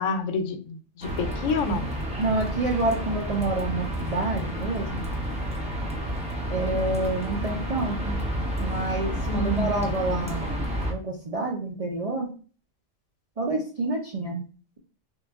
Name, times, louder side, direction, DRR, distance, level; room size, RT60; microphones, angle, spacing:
voice 1, 0.0-1.9 9.3-9.7, left 3 dB, 90° left, 8 dB, 1.0 m, -28 dB
sound 1, 1.0-10.9, equal, 5° right, 0.6 m, -30 dB
voice 2, 2.2-5.1 6.5-8.2 8.6-12.3 13.4-14.4, right 2 dB, 55° right, -1 dB, 0.4 m, -28 dB
3.0 x 2.3 x 3.4 m, 0.39 s
omnidirectional pair, 1.3 m